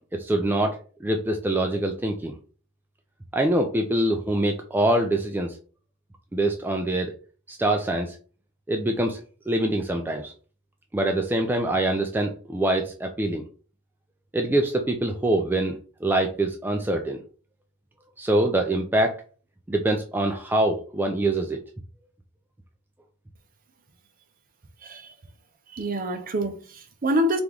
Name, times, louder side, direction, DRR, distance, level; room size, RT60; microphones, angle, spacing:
voice 1, 0.1-2.3 3.3-5.6 6.3-7.1 7.5-8.2 8.7-9.2 9.5-10.3 10.9-13.5 14.3-17.2 18.2-19.2 19.7-21.6, right 1 dB, 10° right, 0.3 m, -24 dB
voice 2, 25.7-27.4, equal, 40° right, 0.6 m, -26 dB
3.4 x 3.0 x 3.7 m
head